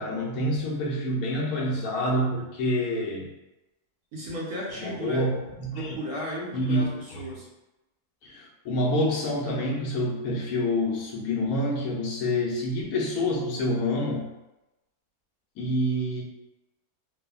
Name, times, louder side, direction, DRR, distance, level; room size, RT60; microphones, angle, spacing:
voice 1, 0.0-3.3 4.8-5.3 5.6-5.9 6.5-7.2 8.2-14.3 15.6-16.2, left 1 dB, 75° left, -3 dB, 1.0 m, -27 dB
voice 2, 4.1-5.3 5.7-7.5, equal, 80° right, -6 dB, 1.4 m, -35 dB
3.2 x 2.1 x 2.3 m, 0.98 s
omnidirectional pair, 1.6 m